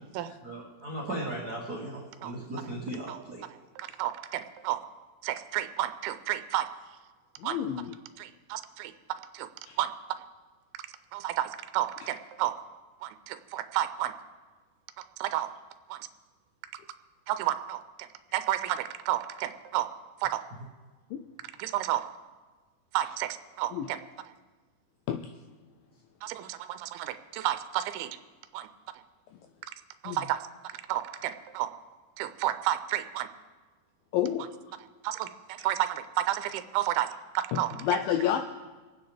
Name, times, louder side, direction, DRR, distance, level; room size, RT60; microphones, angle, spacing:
voice 1, 0.4-3.5, right 1 dB, 60° right, -4 dB, 1.0 m, -37 dB
voice 2, 3.8-4.8 5.2-6.7 7.4-7.6 8.2-8.9 9.3-9.5 9.8-9.9 11.1-12.5 13.0-14.1 15.2-15.5 15.9-16.0 17.3-17.8 18.3-19.9 20.2-20.4 21.6-22.0 22.9-23.3 23.6-24.0 26.2-28.2 28.5-28.7 30.0-30.4 30.7-31.7 32.2-33.3 35.0-37.1 37.3-37.7, right 13 dB, 85° right, 10 dB, 2.6 m, -31 dB
voice 3, 7.4-8.0 9.7-9.8 21.1-21.2 23.7-23.9 25.1-25.3 30.1-30.2 34.1-34.5 37.5-38.4, left 10 dB, 85° left, 6 dB, 2.1 m, -29 dB
25.5 x 9.2 x 3.4 m, 1.3 s
omnidirectional pair, 4.5 m